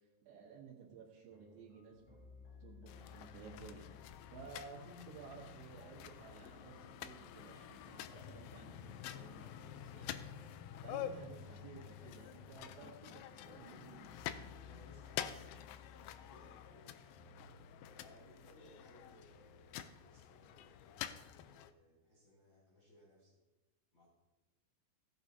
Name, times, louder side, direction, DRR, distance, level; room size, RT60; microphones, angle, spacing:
voice 1, 0.3-2.3 2.6-14.1, right 5 dB, 90° right, -6 dB, 3.8 m, -55 dB
sound 1, 1.3-19.6, left 5 dB, 65° left, 3.7 m, -60 dB
sound 2, 2.9-21.7, left 10 dB, 85° left, 2.1 m, -49 dB
voice 2, 14.5-15.5 15.8-17.3 17.9-23.4 23.9-24.1, left 1 dB, 40° left, -5 dB, 1.9 m, -64 dB
17.0 x 9.2 x 2.7 m, 1.1 s
omnidirectional pair, 4.8 m